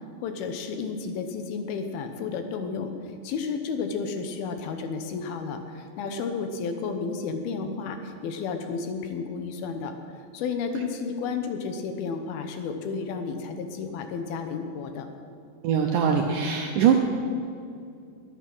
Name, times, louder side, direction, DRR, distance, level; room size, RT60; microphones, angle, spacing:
voice 1, 0.2-9.9 10.3-15.1, left 5 dB, 75° left, 6 dB, 2.7 m, -32 dB
voice 2, 15.6-16.9, right 7 dB, 80° right, 2 dB, 2.0 m, -22 dB
21.5 x 7.5 x 6.1 m, 2.4 s
omnidirectional pair, 4.7 m